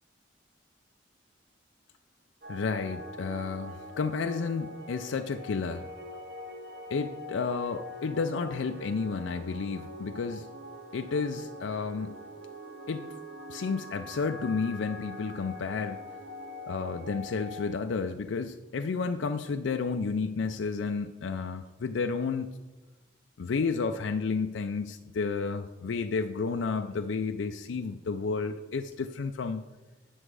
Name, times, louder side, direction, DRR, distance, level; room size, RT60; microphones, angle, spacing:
sound 1, 2.4-17.7, equal, 60° right, 1.4 m, -43 dB
voice 1, 2.5-5.9 6.9-10.5 10.9-12.1 12.9-13.2 13.5-16.0 16.7-22.5 23.4-29.6, left 4 dB, 85° left, 7 dB, 0.4 m, -31 dB
9.8 x 6.2 x 4.8 m, 1.1 s
head